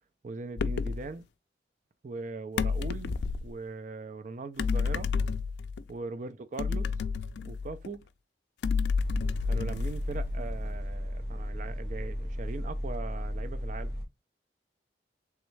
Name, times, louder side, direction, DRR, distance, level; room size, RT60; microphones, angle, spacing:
voice 1, 0.2-1.2 2.0-5.1 5.9-6.9 7.4-8.0 9.5-14.0, right 3 dB, 45° right, 0.4 m, -40 dB
sound 1, 0.6-1.0 2.6-3.5 4.6-5.8 6.6-7.9 8.6-10.5, left 5 dB, 75° left, 0.3 m, -30 dB
sound 2, 9.0-14.0, equal, 60° right, 1.6 m, -34 dB
3.5 x 3.1 x 3.1 m
head